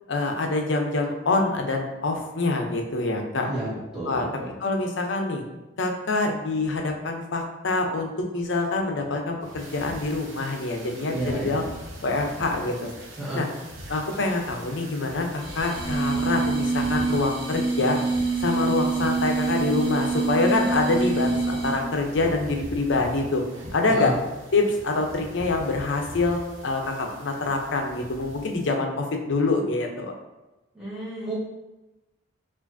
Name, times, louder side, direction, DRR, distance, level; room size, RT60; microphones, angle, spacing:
voice 1, 0.1-3.5 4.1-4.3 4.6-5.4 5.8-11.6 12.0-12.9 13.3-13.5 13.9-18.0 18.4-23.4 23.7-24.1 24.5-30.1, left 3 dB, 65° left, 3 dB, 0.6 m, -25 dB
voice 2, 3.4-4.5 11.1-11.6 13.2-13.4 23.9-24.2 30.7-31.3, right 1 dB, 5° right, -10 dB, 1.3 m, -31 dB
sound 1, 9.4-28.7, right 1 dB, 75° right, 0.8 m, -42 dB
sound 2, 15.4-21.9, right 4 dB, 25° right, 0.6 m, -26 dB
4.7 x 2.5 x 2.6 m, 1.0 s
head